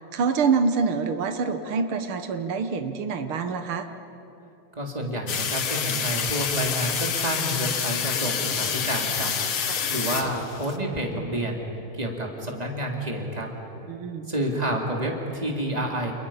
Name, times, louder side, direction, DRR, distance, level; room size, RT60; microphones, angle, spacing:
voice 1, 0.0-3.9 9.7-9.8 13.9-14.3, right 5 dB, 85° right, 7 dB, 2.1 m, -26 dB
voice 2, 4.7-9.4 9.9-11.6 11.9-13.5 14.3-16.1, right 1 dB, 20° right, 0 dB, 3.4 m, -29 dB
sound 1, 5.3-10.8, left 7 dB, 80° left, 2.3 m, -28 dB
30.0 x 29.5 x 5.8 m, 3.0 s
omnidirectional pair, 2.3 m